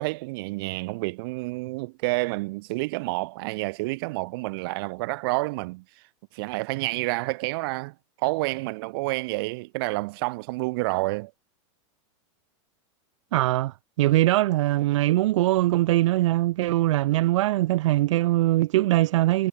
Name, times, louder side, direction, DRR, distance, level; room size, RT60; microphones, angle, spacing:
voice 1, 0.0-5.8 6.3-11.3, right 24 dB, 50° right, 1.4 m, -29 dB
voice 2, 13.3-19.5, right 16 dB, 75° right, 0.4 m, -22 dB
supercardioid pair, 165°, 16 cm